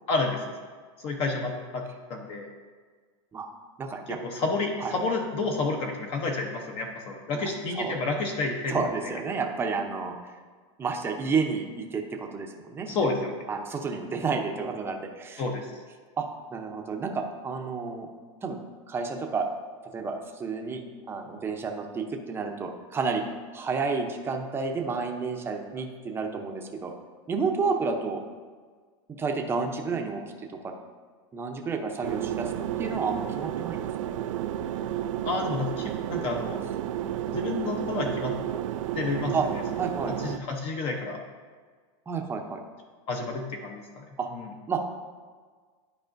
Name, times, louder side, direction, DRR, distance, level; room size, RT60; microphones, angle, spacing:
voice 1, 0.1-0.4 1.0-1.8 2.1-2.5 4.1-8.7 9.0-9.1 12.9-13.3 15.4-15.7 35.2-36.6 37.3-38.3 38.9-39.6 40.2-41.2 43.1-44.0 44.3-44.5, left 3 dB, 35° left, 2 dB, 0.8 m, -30 dB
voice 2, 3.8-4.2 4.8-4.9 7.4-7.5 7.7-7.9 8.7-10.2 10.8-13.0 13.5-15.4 16.2-16.3 16.5-18.1 18.4-18.6 18.9-19.5 19.9-23.2 23.5-26.9 27.3-28.2 29.1-30.2 30.6-30.7 31.3-32.5 32.8-33.8 39.3-39.4 39.8-40.1 42.1-42.6 44.2-44.3 44.7-44.8, right 4 dB, 15° right, 3 dB, 0.6 m, -30 dB
sound 1, 32.0-40.4, right 11 dB, 85° right, 0.4 m, -31 dB
11.5 x 4.8 x 2.6 m, 1.5 s
supercardioid pair, 150°, 16 cm